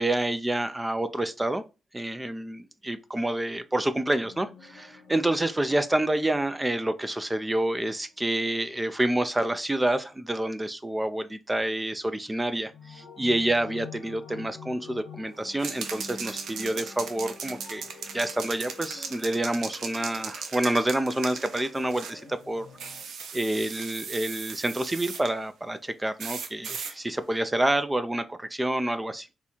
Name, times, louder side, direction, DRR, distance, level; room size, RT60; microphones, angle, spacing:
voice 1, 0.0-1.6 1.9-22.7 23.3-29.3, right 1 dB, 15° right, 0.5 m, -28 dB
sound 1, 4.2-8.5 8.8-9.2 10.0-10.1 12.5-23.1, left 5 dB, 90° left, 1.3 m, -49 dB
sound 2, 15.6-22.2 22.8-25.3 26.2-26.9, right 6 dB, 80° right, 0.6 m, -38 dB
4.2 x 2.4 x 4.3 m
cardioid pair, 65°, 0 cm